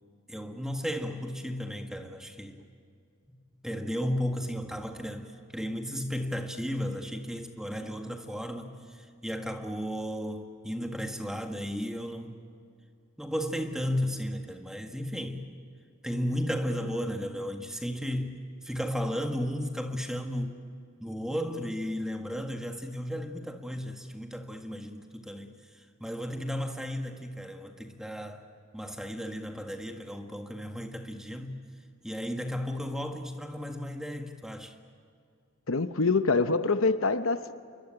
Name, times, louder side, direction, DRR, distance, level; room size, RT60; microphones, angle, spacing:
voice 1, 0.3-2.6 3.3-3.4 3.6-12.4 13.2-15.4 16.0-20.5 21.0-28.4 28.7-31.6 32.0-34.7, equal, 5° right, 4 dB, 1.7 m, -34 dB
voice 2, 35.7-37.6, left 3 dB, 75° left, 11 dB, 0.9 m, -25 dB
28.0 x 22.5 x 9.0 m, 2.3 s
head